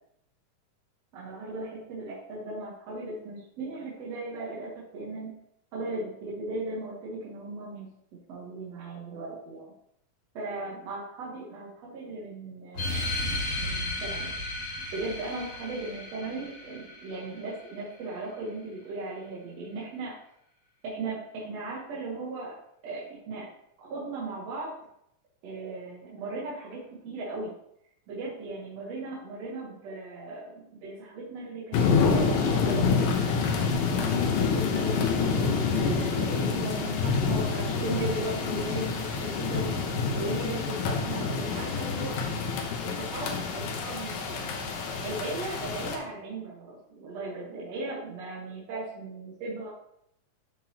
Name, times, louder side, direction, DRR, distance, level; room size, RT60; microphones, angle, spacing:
voice 1, 1.1-5.3 5.7-7.9 8.3-9.7 10.3-14.3 14.9-20.1 20.8-22.5 22.8-23.5 23.8-24.7 25.4-27.5 28.1-35.0 35.4-39.7 40.1-42.2 43.0-44.7 45.0-49.7, right 2 dB, 60° right, -5 dB, 2.1 m, -37 dB
sound 1, 12.7-17.8, left 2 dB, 40° left, 2.2 m, -34 dB
sound 2, 31.7-46.0, left 5 dB, 85° left, 2.5 m, -27 dB
11.5 x 3.9 x 2.8 m, 0.75 s
omnidirectional pair, 3.6 m